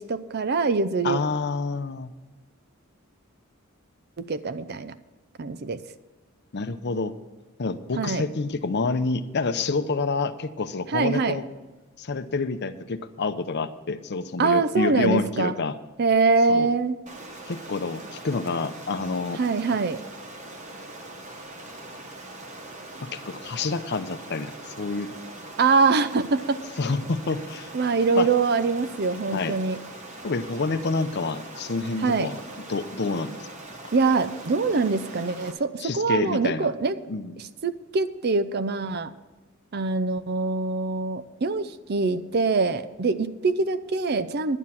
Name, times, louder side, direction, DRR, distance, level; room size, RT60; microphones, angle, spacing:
voice 1, 0.0-1.2 4.2-4.9 5.4-5.8 8.0-8.2 10.9-11.4 14.4-15.5 16.0-17.0 19.4-20.0 25.6-26.6 27.7-29.8 32.0-32.3 33.9-37.0 37.4-39.1 39.7-44.6, right 4 dB, 50° right, 13 dB, 0.6 m, -24 dB
voice 2, 1.0-2.1 6.5-7.1 7.6-11.4 12.0-15.7 16.5-16.7 17.5-19.4 23.0-25.1 26.8-27.7 28.1-28.3 29.3-29.5 30.2-32.4 32.7-33.5 35.8-36.7 37.1-37.4, left 3 dB, 55° left, 11 dB, 0.7 m, -28 dB
Stream, 17.1-35.5, right 2 dB, 35° right, 1.4 m, -42 dB
11.0 x 9.6 x 5.8 m, 1.2 s
head